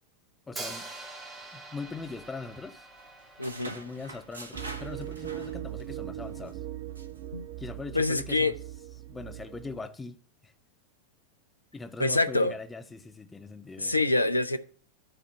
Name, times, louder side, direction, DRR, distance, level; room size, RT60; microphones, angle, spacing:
voice 1, 0.5-0.9 1.5-2.9 3.7-6.6 7.6-8.6 9.1-10.5 11.7-14.0, left 4 dB, 10° left, 0.8 m, -41 dB
Hi-hat, 0.6-4.5, right 2 dB, 15° right, 1.8 m, -44 dB
sound 1, 1.8-2.7 3.0-6.0 6.3-6.5 7.0-7.2, right 2 dB, 75° right, 1.2 m, -45 dB
voice 2, 3.4-3.7 7.3-7.5 7.9-8.6 12.0-12.5 13.8-14.6, left 2 dB, 85° left, 0.6 m, -26 dB
sound 2, 4.5-9.9, right 13 dB, 50° right, 0.7 m, -40 dB
11.0 x 4.2 x 6.8 m
figure-of-eight pair, 90°, 0 cm